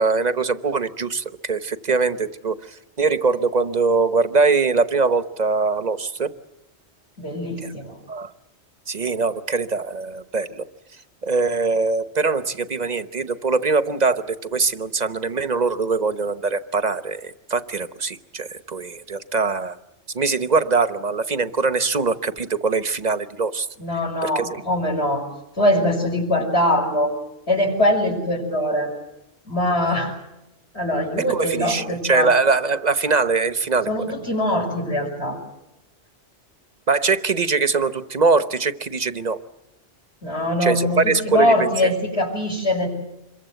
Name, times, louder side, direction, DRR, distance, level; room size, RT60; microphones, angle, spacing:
voice 1, 0.0-6.3 7.6-7.7 8.1-8.3 8.9-10.6 11.2-19.8 20.1-23.7 24.2-24.6 31.3-33.9 36.9-39.4 40.6-41.9, right 4 dB, 40° right, 12 dB, 1.1 m, -22 dB
voice 2, 7.2-8.0 23.8-25.2 25.6-27.1 27.5-28.9 29.5-30.1 30.7-32.3 33.9-35.4 40.2-42.9, left 1 dB, 65° left, -2 dB, 6.0 m, -22 dB
26.5 x 23.0 x 8.0 m, 0.92 s
omnidirectional pair, 1.2 m